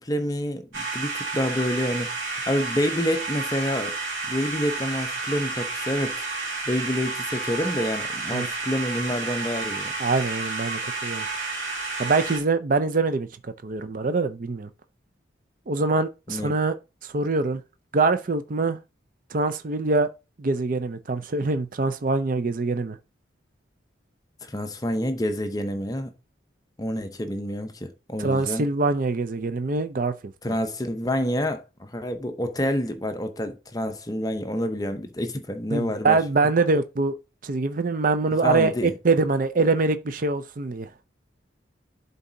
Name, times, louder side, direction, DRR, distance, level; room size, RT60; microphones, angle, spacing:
voice 1, 0.0-4.0 4.3-6.3 6.7-9.9 16.3-16.6 24.4-26.1 26.8-28.7 30.4-36.2 38.4-38.9, left 1 dB, 20° left, 0.6 m, -28 dB
sound 1, 0.7-12.4, right 3 dB, 90° right, 2.9 m, -31 dB
voice 2, 10.0-11.3 12.0-14.7 15.7-16.7 17.0-17.6 17.9-18.8 19.3-20.1 20.4-23.0 28.2-30.1 35.7-37.1 37.4-40.9, right 3 dB, 45° right, 0.5 m, -24 dB
11.0 x 4.1 x 2.7 m
head